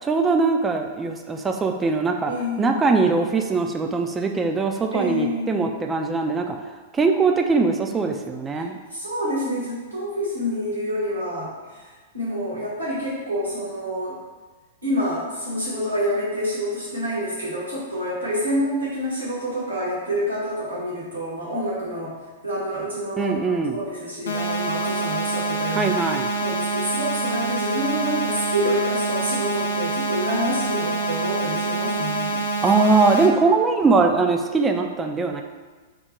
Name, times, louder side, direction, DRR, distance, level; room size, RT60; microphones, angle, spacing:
voice 1, 0.0-2.3 2.6-6.6 6.9-8.8 23.2-23.8 25.8-26.3 32.6-35.4, right 4 dB, 15° right, 4 dB, 0.3 m, -21 dB
voice 2, 2.3-2.8 4.9-5.7 8.5-8.6 8.9-14.2 14.8-22.1 22.4-25.9 26.4-32.4, equal, 75° right, -8 dB, 1.2 m, -27 dB
sound 1, 24.3-33.3, right 2 dB, 65° left, 0.5 m, -26 dB
3.7 x 2.1 x 4.4 m, 1.3 s
figure-of-eight pair, 100°, 0 cm